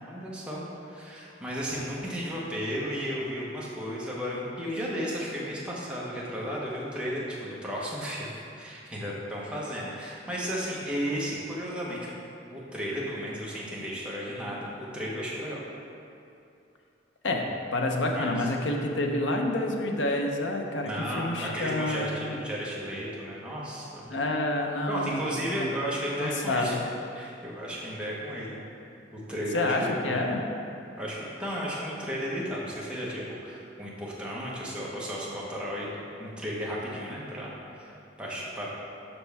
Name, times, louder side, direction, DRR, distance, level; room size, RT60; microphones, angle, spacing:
voice 1, 0.1-8.3 8.6-12.1 12.5-15.6 18.1-18.5 20.8-24.1 24.9-26.7 27.1-28.7 29.1-30.4 31.0-35.9 36.2-38.7, equal, 5° right, -6 dB, 1.0 m, -34 dB
voice 2, 17.2-22.4 24.1-25.2 25.6-25.7 26.2-26.8 29.5-30.4, left 2 dB, 75° left, 2 dB, 0.7 m, -28 dB
6.9 x 5.7 x 3.4 m, 2.6 s
head